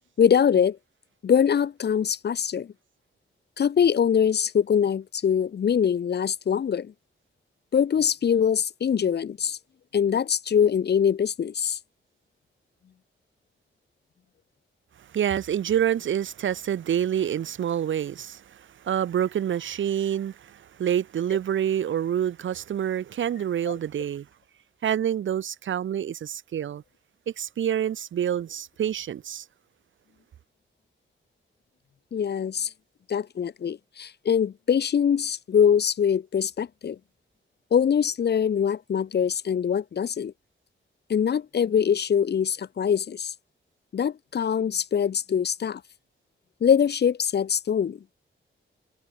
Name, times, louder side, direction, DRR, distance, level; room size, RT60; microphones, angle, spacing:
voice 1, 0.2-0.8 1.2-2.7 3.6-6.9 7.7-9.6 9.9-11.8 32.1-32.7 33.1-37.0 37.7-40.3 41.1-43.3 43.9-45.8 46.6-48.0, left 8 dB, 55° left, 0.7 m, -23 dB
voice 2, 15.1-18.4 18.8-24.2 24.8-26.8 27.3-29.4, right 9 dB, 70° right, 0.7 m, -27 dB
wide cardioid pair, 95°, 21 cm